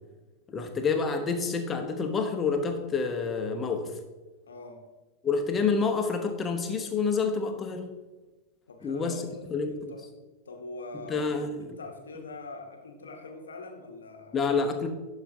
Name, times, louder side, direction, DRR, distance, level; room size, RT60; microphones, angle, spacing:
voice 1, 0.5-3.9 5.2-7.9 8.8-9.1 9.5-9.9 11.1-11.7 14.3-14.9, left 5 dB, 20° left, 4 dB, 0.9 m, -28 dB
voice 2, 4.4-4.8 8.7-10.0 10.4-11.3 11.6-14.6, left 2 dB, 70° left, 4 dB, 1.0 m, -43 dB
11.5 x 5.0 x 2.8 m, 1.2 s
figure-of-eight pair, 90°, 0 cm